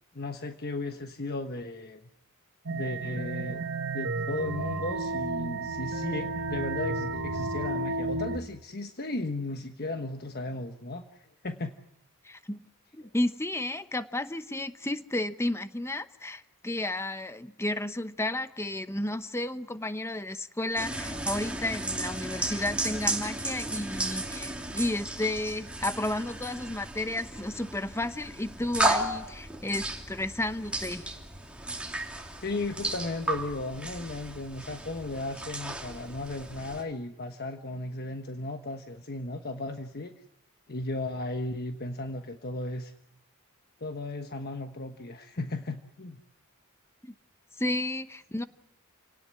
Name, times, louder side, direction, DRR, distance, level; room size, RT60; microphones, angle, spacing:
voice 1, 0.1-2.0 2.7-3.6 3.9-11.0 11.4-11.7 32.4-40.1 40.7-42.9 43.8-46.2, left 2 dB, 50° left, 6 dB, 1.3 m, -35 dB
sound 1, 2.7-8.4, right 2 dB, 75° right, 2.0 m, -32 dB
voice 2, 12.2-12.6 12.9-31.1 47.0-47.1 47.6-48.4, left 1 dB, 10° left, 11 dB, 0.9 m, -32 dB
sound 2, 20.8-36.8, right 1 dB, 5° right, 2.8 m, -34 dB
28.5 x 18.5 x 9.7 m, 0.82 s
head